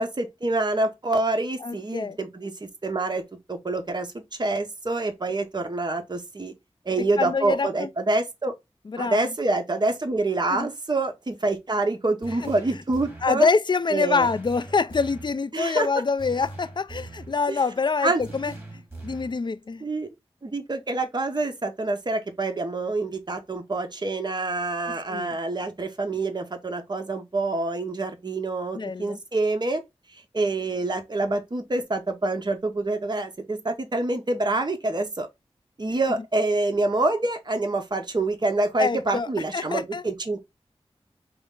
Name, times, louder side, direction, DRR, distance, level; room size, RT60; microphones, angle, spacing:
voice 1, 0.0-3.2 3.5-4.1 4.4-6.5 6.8-8.5 9.0-13.5 13.9-14.3 15.5-15.9 17.5-17.6 18.0-18.2 19.8-20.1 20.4-29.8 30.1-35.3 35.8-40.4, right 2 dB, 40° right, 0.9 m, -26 dB
voice 2, 1.6-2.2 7.0-7.9 8.9-9.3 10.5-10.7 12.4-12.5 13.2-19.8 25.1-25.4 28.7-29.2 38.8-40.0, left 4 dB, 45° left, 0.4 m, -26 dB
sound 1, 12.2-13.4 14.2-15.4 16.2-17.4 18.2-19.4, right 2 dB, 20° right, 1.9 m, -41 dB
4.9 x 2.0 x 3.6 m
wide cardioid pair, 45°, 11 cm